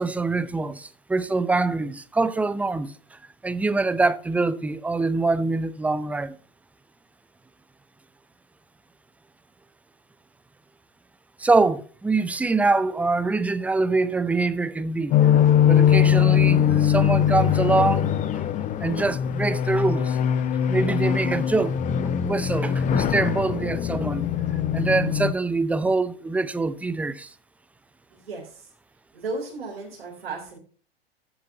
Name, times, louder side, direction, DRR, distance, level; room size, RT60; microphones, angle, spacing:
voice 1, 0.0-6.4 11.4-15.2 15.7-18.4 18.8-20.2 20.7-21.8 22.2-24.3 24.7-27.3, right 3 dB, 5° right, 0.5 m, -24 dB
sound 1, 15.1-25.3, left 9 dB, 25° left, 0.8 m, -21 dB
voice 2, 28.1-28.7 29.1-30.6, right 3 dB, 75° right, 3.1 m, -35 dB
14.0 x 7.9 x 2.7 m
figure-of-eight pair, 95°, 30 cm